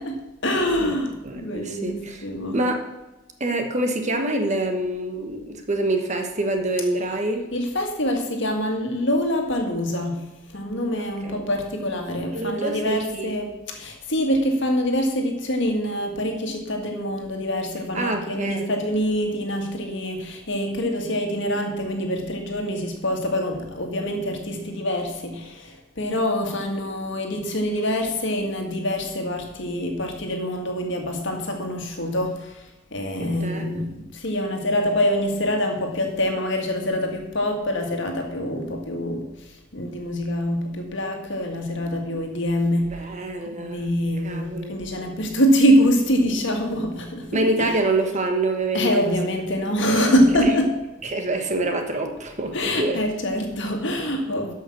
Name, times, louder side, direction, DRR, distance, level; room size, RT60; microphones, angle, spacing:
voice 1, 0.0-2.6 7.5-10.2 10.5-43.1 43.5-47.7 48.7-50.8 52.5-54.5, equal, 60° left, 3 dB, 1.9 m, -25 dB
voice 2, 1.2-2.2 2.5-2.8 3.4-7.4 11.0-11.5 12.3-13.3 17.9-18.7 33.2-33.9 42.8-43.9 44.2-44.7 47.3-49.1 51.0-53.0, right 2 dB, 35° right, 4 dB, 1.3 m, -26 dB
12.5 x 5.7 x 6.0 m, 1.0 s
head